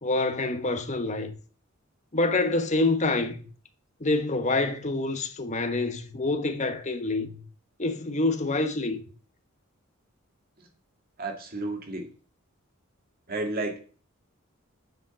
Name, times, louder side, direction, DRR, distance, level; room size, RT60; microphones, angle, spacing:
voice 1, 0.0-1.3 2.1-3.5 4.0-7.4 7.8-9.0, left 2 dB, 35° left, 1.2 m, -26 dB
voice 2, 11.2-12.1 13.3-13.8, right 2 dB, 45° right, 2.1 m, -32 dB
9.3 x 5.1 x 6.9 m
head